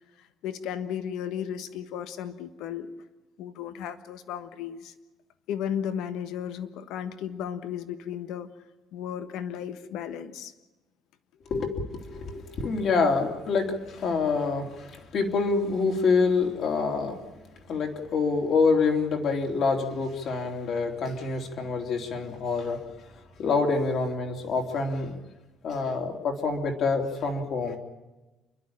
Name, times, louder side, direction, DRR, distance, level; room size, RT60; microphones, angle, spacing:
voice 1, 0.2-2.9 3.4-4.9 5.5-8.5 8.9-10.5, left 9 dB, 75° left, 10 dB, 1.3 m, -34 dB
voice 2, 11.5-17.2 17.7-22.8 23.4-25.2 25.6-27.8, left 4 dB, 50° left, 2 dB, 3.0 m, -26 dB
29.0 x 12.0 x 8.9 m, 1.1 s
cardioid pair, 160°, 0 cm